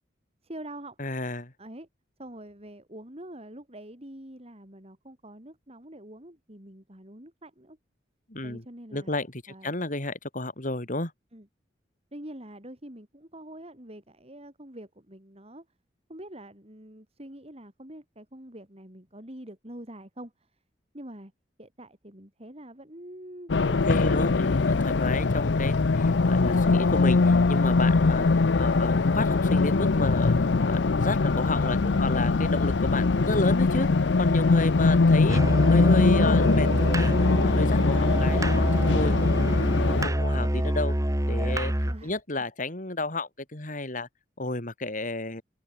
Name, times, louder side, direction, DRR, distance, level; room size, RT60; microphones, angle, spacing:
voice 1, 0.4-1.0 1.6-1.9 2.2-7.8 8.4-9.1 9.5-9.7 11.3-11.5 12.1-15.7 16.1-20.3 20.9-21.3 21.6-24.3 31.2-32.2 33.2-33.4 34.9-35.0 41.9-42.1, right 1 dB, 35° right, 6.7 m, -45 dB
voice 2, 1.0-1.5 8.3-8.6 8.9-11.1 23.8-33.9 34.2-36.7 36.9-39.6 39.9-40.9 41.3-41.7 42.0-44.1 44.4-45.4, left 2 dB, 50° left, 4.4 m, -31 dB
Race car auto racing, 23.5-40.1, left 3 dB, 85° left, 0.6 m, -22 dB
Musical instrument, 35.3-42.0, equal, 20° right, 1.9 m, -26 dB
head